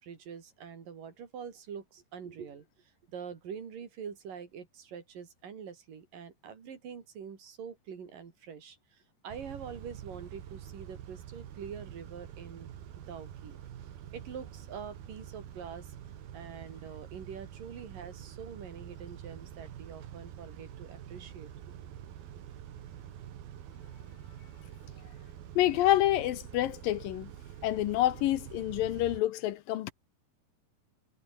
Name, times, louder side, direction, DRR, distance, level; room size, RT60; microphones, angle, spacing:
voice 1, 0.0-12.7 13.0-13.6 14.1-15.9 16.3-21.5, right 7 dB, 65° right, 4.8 m, -45 dB
Car / Idling / Accelerating revving vroom, 9.3-29.2, right 10 dB, 85° right, 4.1 m, -46 dB
voice 2, 25.6-27.3 27.6-29.9, left 14 dB, 75° left, 2.6 m, -28 dB
omnidirectional pair, 4.2 m